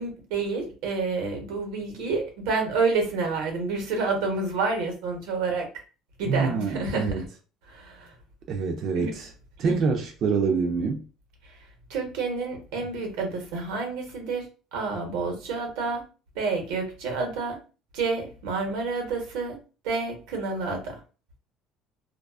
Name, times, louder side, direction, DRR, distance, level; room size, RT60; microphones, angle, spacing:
voice 1, 0.0-5.7 6.2-7.1 7.7-8.1 8.9-9.2 9.6-9.8 11.9-14.4 14.7-16.0 16.3-17.6 17.9-19.6 19.8-21.0, right 4 dB, 85° right, 0.9 m, -29 dB
voice 2, 6.3-7.2 8.5-9.3 9.6-11.0, right 5 dB, 40° right, 0.3 m, -26 dB
2.3 x 2.2 x 2.3 m
cardioid pair, 170°, 0 cm